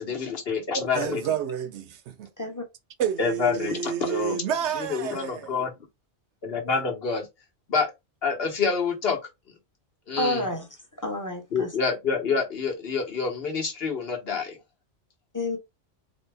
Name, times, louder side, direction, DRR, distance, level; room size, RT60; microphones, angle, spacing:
voice 1, 0.0-1.3 3.2-4.4 4.8-5.7 6.4-7.3 7.7-7.9 8.2-9.2 10.1-10.5 11.5-14.6, left 5 dB, 55° left, 1.1 m, -27 dB
voice 2, 0.9-2.3 3.0-5.6, right 9 dB, 70° right, 0.8 m, -30 dB
voice 3, 10.2-10.7 11.0-11.7 15.3-15.6, left 1 dB, 20° left, 0.8 m, -29 dB
4.1 x 2.1 x 3.3 m
omnidirectional pair, 1.2 m